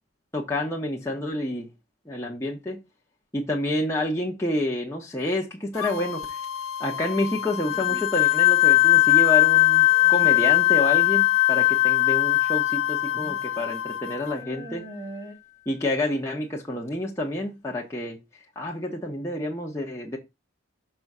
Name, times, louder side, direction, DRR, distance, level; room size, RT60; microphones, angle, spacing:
voice 1, 0.3-1.7 2.1-2.8 3.3-6.4 6.8-14.8 15.7-18.2 18.5-20.2, left 1 dB, 15° left, 1.1 m, -29 dB
sound 1, 5.7-14.4, left 7 dB, 80° left, 0.6 m, -34 dB
sound 2, 7.3-8.0 8.7-9.2 9.8-10.3 11.6-11.7 12.8-13.4 13.7-13.8 14.3-15.3, right 1 dB, 15° right, 1.6 m, -43 dB
sound 3, 7.7-14.1, left 18 dB, 35° left, 1.1 m, -20 dB
6.1 x 4.1 x 6.0 m
head